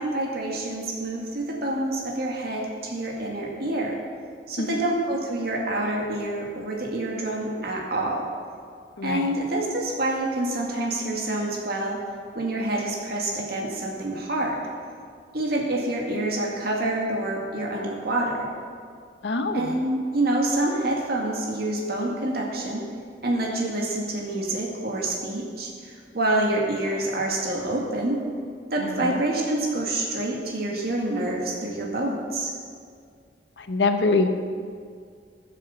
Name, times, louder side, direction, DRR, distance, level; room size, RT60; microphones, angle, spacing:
voice 1, 0.0-4.0 4.5-8.2 9.0-12.0 12.4-14.6 15.3-18.5 19.5-22.8 23.2-28.2 28.7-32.5, right 1 dB, 60° right, -1 dB, 2.0 m, -27 dB
voice 2, 9.0-9.3 19.2-19.8 28.8-29.2 33.6-34.3, left 3 dB, 85° left, 7 dB, 1.0 m, -24 dB
15.0 x 7.5 x 7.1 m, 2.1 s
head